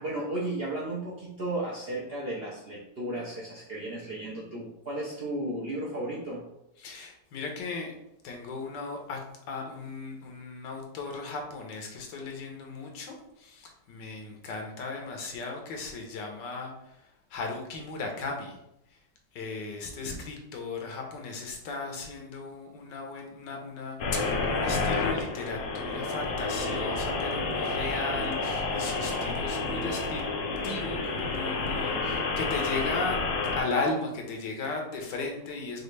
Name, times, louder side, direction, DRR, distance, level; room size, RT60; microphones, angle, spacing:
voice 1, 0.0-6.4, right 1 dB, 55° right, -5 dB, 0.7 m, -34 dB
voice 2, 6.8-7.9 8.2-9.2 9.5-16.7 17.3-18.5 19.3-30.2 30.6-35.8, left 3 dB, 80° left, 2 dB, 1.4 m, -36 dB
sound 1, 24.0-33.6, left 3 dB, 60° left, 0.8 m, -30 dB
5.2 x 2.5 x 3.2 m, 0.84 s
omnidirectional pair, 1.9 m